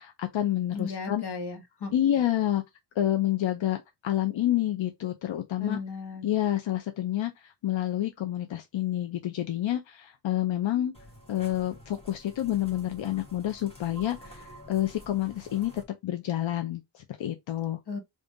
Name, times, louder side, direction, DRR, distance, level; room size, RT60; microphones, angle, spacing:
voice 1, 0.0-1.2 1.9-2.6 3.0-5.8 6.2-10.9 11.3-17.8, left 12 dB, 85° left, 0.6 m, -28 dB
voice 2, 0.7-1.9 5.6-6.3 17.9-18.0, left 4 dB, 60° left, 1.2 m, -35 dB
sound 1, 10.9-15.8, equal, 10° left, 1.2 m, -49 dB
3.6 x 2.5 x 3.8 m
wide cardioid pair, 170°, 45 cm